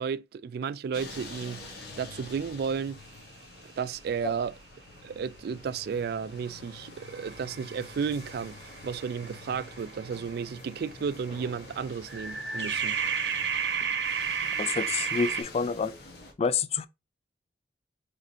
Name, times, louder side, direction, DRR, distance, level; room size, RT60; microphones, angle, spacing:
voice 1, 0.0-3.0 3.6-4.5 5.0-13.0, right 6 dB, 60° right, 0.3 m, -33 dB
sound 1, 0.9-16.3, left 2 dB, 60° left, 1.4 m, -47 dB
sound 2, 6.4-11.0 12.1-15.4, right 6 dB, 75° right, 0.8 m, -33 dB
voice 2, 14.6-15.9 16.4-16.9, left 5 dB, 35° left, 0.3 m, -28 dB
5.0 x 3.2 x 2.8 m
head